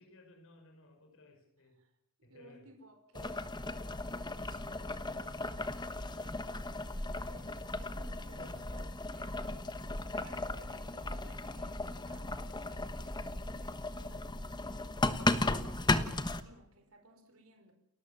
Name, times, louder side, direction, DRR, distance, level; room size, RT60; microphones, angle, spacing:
voice 1, 0.0-1.8 2.2-2.7 5.9-6.5 10.0-10.1, left 1 dB, 65° left, 3 dB, 5.8 m, -59 dB
voice 2, 2.2-6.0 7.1-9.6 10.1-17.7, right 1 dB, 70° right, 5 dB, 4.6 m, -59 dB
Boiling, 3.1-16.4, left 2 dB, 20° left, 1.2 m, -36 dB
30.0 x 14.0 x 7.5 m, 0.81 s
head